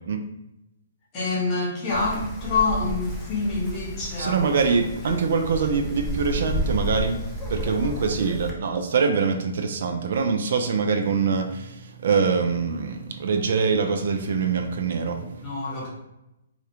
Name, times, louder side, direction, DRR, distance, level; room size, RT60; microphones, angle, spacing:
voice 1, 1.1-4.6 5.0-5.2 15.4-15.9, left 3 dB, 30° left, -5 dB, 0.8 m, -26 dB
Wind, 1.9-8.5, equal, 5° left, 0.5 m, -32 dB
voice 2, 4.2-7.2 7.5-15.5, right 5 dB, 65° right, 5 dB, 0.3 m, -24 dB
2.4 x 2.0 x 2.9 m, 0.90 s
hypercardioid pair, 150°, 0 cm